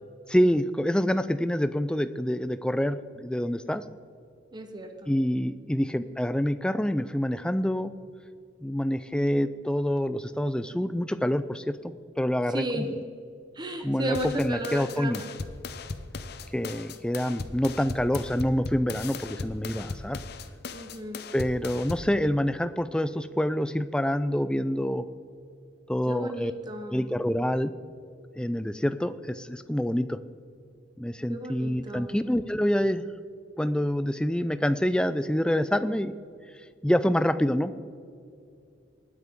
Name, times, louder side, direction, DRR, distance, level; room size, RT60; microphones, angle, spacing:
voice 1, 0.3-3.8 5.1-7.9 8.6-11.8 12.2-12.9 13.8-15.2 16.5-20.2 21.3-25.1 25.9-26.5 26.9-27.7 28.4-30.2 31.0-33.0 33.6-36.1 36.8-37.7, equal, 5° left, 13 dB, 0.3 m, -26 dB
voice 2, 4.5-5.1 12.5-12.9 13.5-15.2 20.7-21.2 26.1-27.1 31.3-32.2, right 1 dB, 20° right, 6 dB, 0.9 m, -34 dB
sound 1, 14.1-22.1, left 4 dB, 55° left, 0.7 m, -38 dB
19.5 x 9.8 x 3.6 m, 2.4 s
head